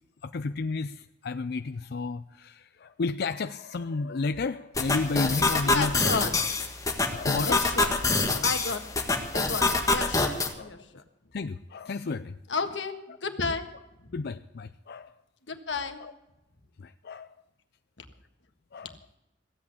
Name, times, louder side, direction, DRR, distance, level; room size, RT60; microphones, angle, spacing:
voice 1, 0.2-6.0 6.4-6.5 7.1-7.6 8.3-8.4 9.6-9.7 10.6-10.7 11.3-12.4 14.1-15.1 16.0-16.1 16.8-17.3 18.7-19.0, left 3 dB, 60° left, 11 dB, 0.5 m, -32 dB
sound 1, 4.8-10.5, left 3 dB, 20° left, 1.6 m, -26 dB
voice 2, 5.6-6.4 7.4-7.9 8.4-8.8 9.3-11.0 12.5-13.7 15.5-16.0 18.0-18.1, left 4 dB, 85° left, 7 dB, 1.6 m, -32 dB
15.5 x 8.5 x 8.6 m, 0.96 s
head